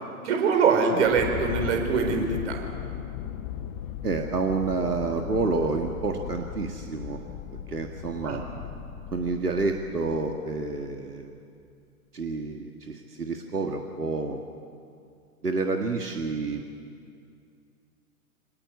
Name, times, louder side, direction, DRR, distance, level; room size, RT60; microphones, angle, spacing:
voice 1, 0.2-2.6 8.2-8.4, right 5 dB, 45° right, 4 dB, 4.6 m, -23 dB
sound 1, 1.0-10.6, left 10 dB, 15° left, 0.7 m, -37 dB
voice 2, 4.0-7.2 7.7-8.4 9.1-11.3 12.1-14.4 15.4-16.6, right 3 dB, 80° right, 4 dB, 1.8 m, -29 dB
25.5 x 18.0 x 9.6 m, 2.4 s
figure-of-eight pair, 115°, 46 cm